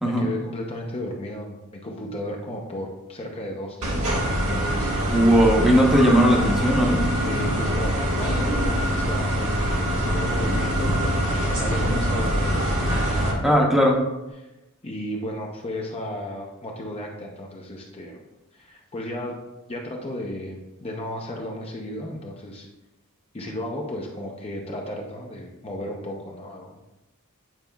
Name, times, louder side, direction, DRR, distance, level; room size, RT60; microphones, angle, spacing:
voice 1, 0.0-5.1 7.2-13.5 14.4-14.5 14.8-18.2 18.5-19.4 19.7-22.7 23.3-26.8, left 1 dB, 25° left, 0 dB, 0.6 m, -34 dB
sound 1, 3.8-13.3, equal, 65° right, 1.5 m, -24 dB
voice 2, 5.1-7.1 13.4-14.0, equal, ahead, -1 dB, 0.8 m, -18 dB
9.0 x 5.0 x 2.3 m, 1.0 s
head